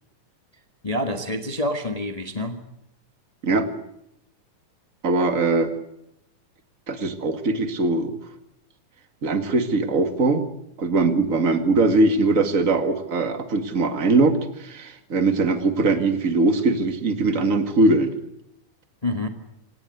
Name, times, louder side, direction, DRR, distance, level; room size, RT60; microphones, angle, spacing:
voice 1, 0.8-2.6 19.0-19.3, left 1 dB, 65° left, 6 dB, 0.3 m, -27 dB
voice 2, 5.0-5.7 6.9-8.2 9.2-10.5 10.8-18.1, right 3 dB, 30° right, 8 dB, 1.8 m, -21 dB
26.5 x 18.5 x 8.0 m, 0.79 s
omnidirectional pair, 3.8 m